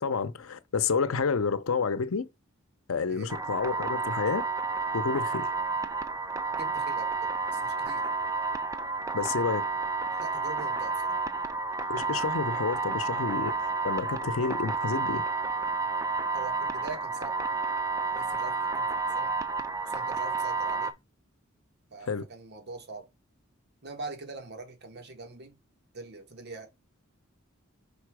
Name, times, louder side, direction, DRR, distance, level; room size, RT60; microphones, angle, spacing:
voice 1, 0.0-2.3 2.9-4.4 4.9-5.5 9.1-9.6 11.9-15.2 22.0-22.2, left 5 dB, 90° left, 0.7 m, -29 dB
sound 1, 3.3-20.9, right 4 dB, 15° right, 0.5 m, -30 dB
voice 2, 6.6-8.1 10.2-11.2 16.3-17.4 18.1-19.4 19.8-21.0 21.9-23.1 23.8-25.6 25.9-26.7, right 3 dB, 55° right, 1.3 m, -43 dB
5.4 x 3.8 x 4.8 m
head